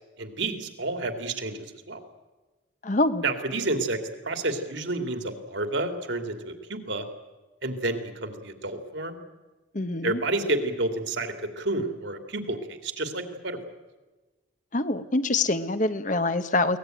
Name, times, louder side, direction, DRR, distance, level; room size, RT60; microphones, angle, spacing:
voice 1, 0.2-1.6 1.9-2.0 3.2-4.0 4.2-7.1 7.6-9.2 10.0-13.6, right 2 dB, 65° right, 7 dB, 2.6 m, -30 dB
voice 2, 2.8-3.2 9.7-10.2 14.7-16.8, left 2 dB, 40° left, 11 dB, 1.0 m, -25 dB
23.0 x 18.5 x 9.2 m, 1.2 s
head